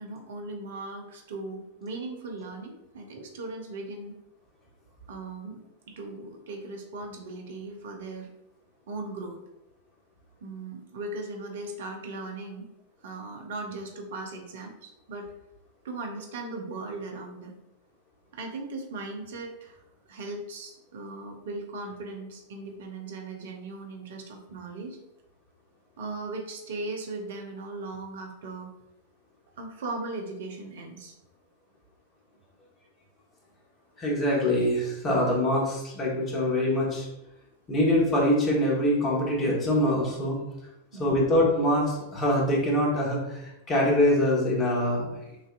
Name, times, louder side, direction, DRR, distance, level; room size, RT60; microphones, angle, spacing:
voice 1, 0.0-4.2 5.1-8.3 8.9-9.4 10.4-12.7 13.0-15.3 15.8-17.5 18.3-19.8 20.1-25.0 26.0-28.7 29.6-31.2 40.9-41.2, right 2 dB, 60° right, 2 dB, 0.9 m, -38 dB
voice 2, 34.0-37.1 37.7-40.4 41.0-45.3, left 1 dB, 25° left, -3 dB, 1.6 m, -24 dB
6.4 x 2.8 x 2.5 m, 0.89 s
figure-of-eight pair, 90°, 0 cm